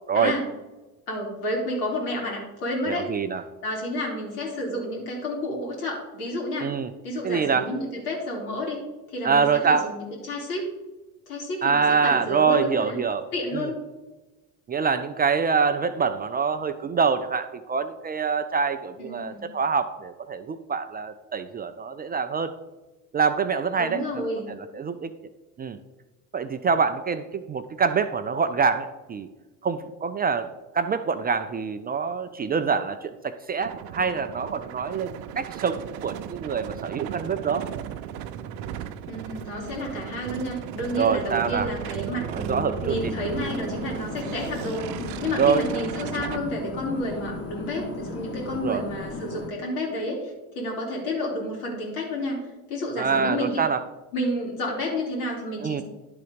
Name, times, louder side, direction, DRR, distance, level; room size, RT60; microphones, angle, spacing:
voice 1, 1.1-3.1 3.6-6.7 7.0-8.8 9.1-10.6 11.3-13.0 13.3-13.8 19.0-19.4 23.8-24.5 39.1-44.9 45.2-53.6 54.1-55.8, left 1 dB, 80° left, -2 dB, 3.1 m, -30 dB
voice 2, 2.9-3.4 6.6-6.9 7.2-7.7 9.2-9.9 11.6-13.2 13.5-13.7 14.7-22.6 23.1-25.1 25.6-25.8 26.3-29.3 29.6-37.7 41.0-41.7 42.3-43.1 45.4-45.6 48.5-48.8 53.0-53.8 55.6-55.8, right 5 dB, 20° right, 9 dB, 0.4 m, -25 dB
sound 1, 33.6-46.4, right 10 dB, 70° right, 0.7 m, -36 dB
sound 2, 42.9-49.5, left 3 dB, 35° left, 1.6 m, -36 dB
10.5 x 3.9 x 5.1 m, 1.1 s
hypercardioid pair, 80°, 44 cm